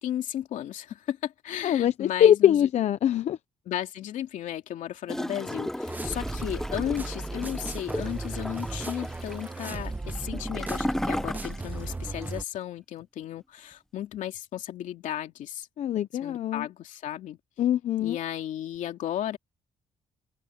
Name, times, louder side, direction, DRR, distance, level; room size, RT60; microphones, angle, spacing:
voice 1, 0.0-2.7 3.7-15.7 16.2-17.4 18.0-19.4, left 11 dB, 80° left, 2.7 m, -34 dB
voice 2, 1.6-3.4 15.8-16.7 17.6-18.2, left 10 dB, 60° left, 0.7 m, -23 dB
Gurgling / Toilet flush, 5.1-11.9 12.2-12.3, left 1 dB, 5° left, 0.7 m, -34 dB
sound 1, 5.9-12.4, right 2 dB, 15° right, 1.2 m, -36 dB
cardioid pair, 140°, 13 cm